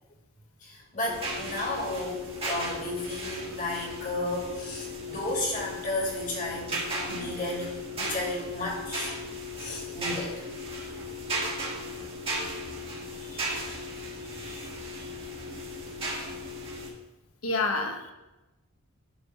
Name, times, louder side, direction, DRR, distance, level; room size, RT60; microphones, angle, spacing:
voice 1, 0.6-9.1 9.6-10.5, left 1 dB, 40° left, -3 dB, 2.4 m, -33 dB
sound 1, 1.1-16.9, equal, 25° right, 1.7 m, -36 dB
voice 2, 13.3-13.8 14.6-14.7 17.4-18.1, left 3 dB, 85° left, 5 dB, 1.1 m, -31 dB
11.5 x 3.8 x 5.5 m, 1.1 s
head